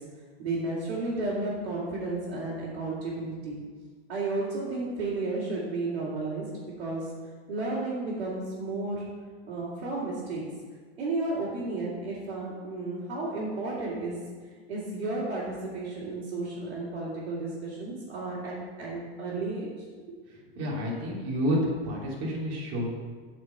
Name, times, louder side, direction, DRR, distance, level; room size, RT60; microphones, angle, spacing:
voice 1, 0.4-3.6 4.1-6.5 6.8-7.1 7.5-9.0 9.5-10.4 11.0-14.2 14.7-19.7, right 2 dB, 85° right, -8 dB, 2.9 m, -32 dB
voice 2, 20.3-21.6 21.8-22.9, equal, 50° right, -4 dB, 3.0 m, -30 dB
8.2 x 5.2 x 6.8 m, 1.5 s
supercardioid pair, 125°, 31 cm